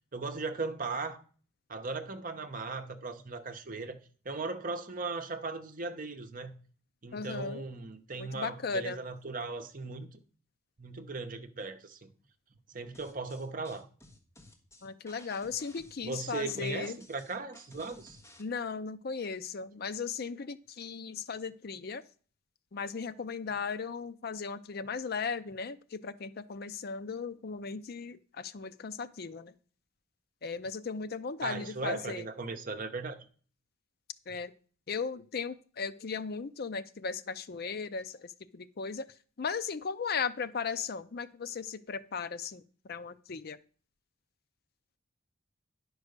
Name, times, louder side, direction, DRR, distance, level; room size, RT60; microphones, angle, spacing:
voice 1, 0.1-1.2 1.7-4.0 4.2-6.5 7.0-10.2 10.8-12.1 12.7-13.9 16.0-18.2 31.4-33.2, right 3 dB, 40° right, 0.9 m, -38 dB
voice 2, 7.1-7.7 8.2-9.0 14.8-17.0 18.4-22.0 22.7-29.5 30.4-32.3 34.3-34.5 34.9-39.1 39.4-42.6 42.9-43.6, left 5 dB, 50° left, 0.5 m, -37 dB
sound 1, 12.9-18.4, left 1 dB, 15° left, 1.4 m, -56 dB
10.5 x 4.8 x 6.6 m
head